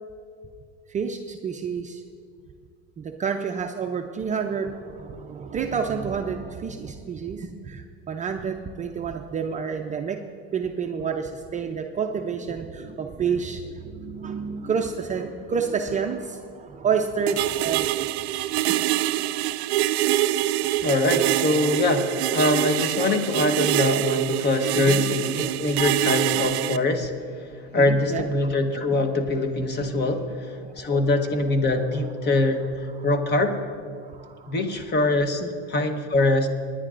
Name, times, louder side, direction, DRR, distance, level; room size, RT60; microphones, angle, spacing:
voice 1, 0.9-2.0 3.0-10.2 10.5-18.9 19.3-19.4 24.8-25.0 27.8-28.3 30.6-30.9 33.0-33.1 34.0-34.6 35.4-35.5, right 6 dB, 25° right, 4 dB, 0.5 m, -29 dB
sound 1, 17.3-26.8, right 15 dB, 80° right, 0.5 m, -25 dB
voice 2, 20.8-27.1 27.7-33.6 34.5-35.4 35.7-36.5, left 2 dB, 30° left, 7 dB, 1.1 m, -23 dB
26.0 x 10.0 x 2.5 m, 2.2 s
supercardioid pair, 120°, 32 cm